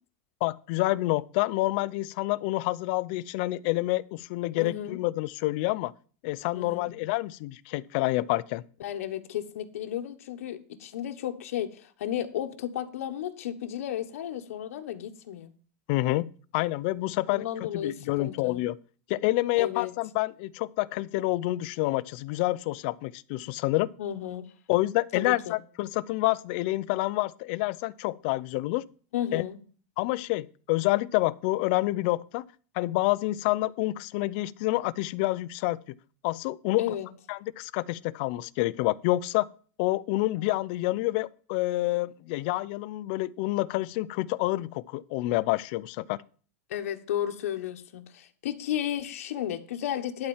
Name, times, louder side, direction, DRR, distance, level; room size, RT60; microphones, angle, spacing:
voice 1, 0.4-5.9 6.2-8.6 15.9-17.5 17.7-18.8 19.1-23.9 24.7-28.8 29.3-29.4 30.0-32.4 32.7-35.8 36.2-36.8 37.3-39.5 39.8-46.2, left 19 dB, 45° left, 0.5 m, -28 dB
voice 2, 4.5-5.0 6.5-6.9 8.8-15.5 17.3-18.6 19.6-19.9 24.0-24.5 25.1-25.6 29.1-29.6 36.8-37.1 46.7-50.3, left 10 dB, 85° left, 1.2 m, -33 dB
11.5 x 4.3 x 7.2 m
supercardioid pair, 165°, 8 cm